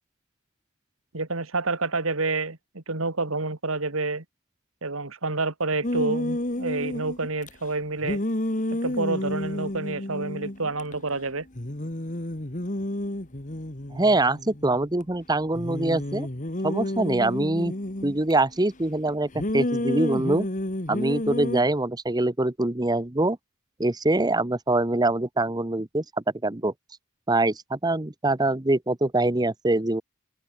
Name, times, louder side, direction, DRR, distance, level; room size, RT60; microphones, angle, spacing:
voice 1, 1.1-4.2 4.8-8.2 8.7-11.5, right 3 dB, 75° right, 2.5 m, -28 dB
sound 1, 5.8-7.5 8.0-10.9 11.2-11.3 11.6-15.0 15.6-18.3 19.3-21.6, left 1 dB, 35° left, 1.9 m, -30 dB
voice 2, 13.9-16.3 16.6-17.7 18.0-20.5 20.9-23.4 23.8-26.0 26.4-26.7 27.3-30.0, right 2 dB, 20° right, 1.0 m, -24 dB
open air
head